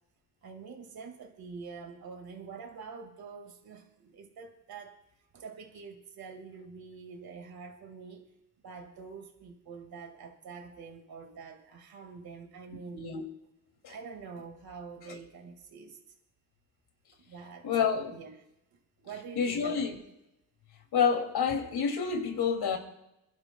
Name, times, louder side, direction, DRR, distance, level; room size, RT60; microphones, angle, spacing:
voice 1, 0.4-5.0 5.3-8.2 8.6-13.0 13.9-16.0 17.2-17.7 18.1-18.4 19.0-20.0, right 5 dB, 65° right, 4 dB, 2.0 m, -46 dB
voice 2, 12.9-13.2 13.8-13.9 17.6-18.2 19.4-20.0 20.9-22.8, left 6 dB, 75° left, 4 dB, 2.6 m, -28 dB
28.0 x 11.5 x 2.3 m, 0.88 s
cardioid pair, 85°, 39 cm